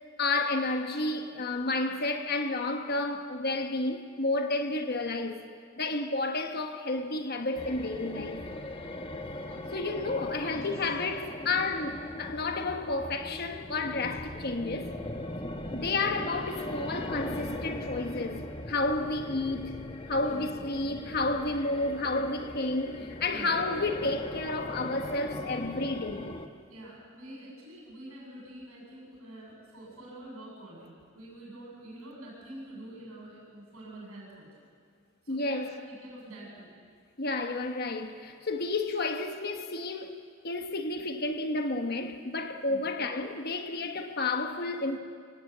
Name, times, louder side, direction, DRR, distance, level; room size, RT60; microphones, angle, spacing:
voice 1, 0.2-5.4 5.8-8.4 9.7-14.9 15.7-26.3 35.3-35.7 37.2-45.0, left 2 dB, 45° left, 1.2 m, -31 dB
sound 1, 7.6-26.5, left 1 dB, 25° left, 1.1 m, -39 dB
voice 2, 9.5-9.8 10.4-10.7 15.6-15.8 20.2-20.6 23.3-23.6 26.7-34.7 35.2-36.7 42.6-42.9, right 1 dB, 75° right, 7.5 m, -47 dB
25.0 x 18.0 x 8.5 m
head